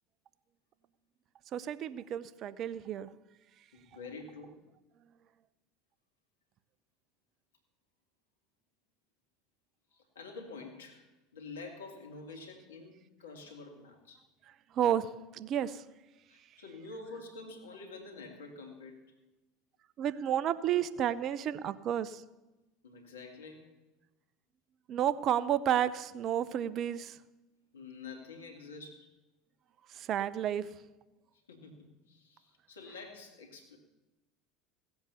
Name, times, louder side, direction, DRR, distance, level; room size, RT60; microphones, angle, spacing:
voice 1, 1.5-3.1 14.7-15.8 20.0-22.2 24.9-27.2 29.9-30.7, right 10 dB, 50° right, 16 dB, 0.7 m, -31 dB
voice 2, 3.7-4.7 9.9-14.3 16.3-19.2 22.8-23.8 27.7-29.1 31.5-33.8, left 3 dB, 85° left, 4 dB, 2.2 m, -48 dB
17.0 x 7.9 x 7.0 m, 1.0 s
hypercardioid pair, 75°, 0 cm